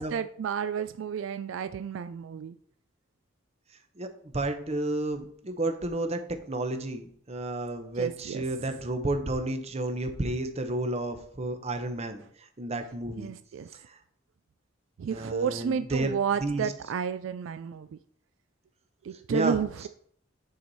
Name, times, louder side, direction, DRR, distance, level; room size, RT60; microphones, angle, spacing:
voice 1, 0.0-2.5 8.0-8.4 13.2-13.7 15.0-17.9 19.0-19.9, right 7 dB, 75° right, 11 dB, 0.3 m, -31 dB
voice 2, 4.3-6.2 6.5-12.2 12.6-13.3 15.1-16.1 16.4-16.7 19.3-19.6, right 2 dB, 35° right, 7 dB, 0.8 m, -31 dB
9.3 x 4.7 x 4.1 m, 0.63 s
head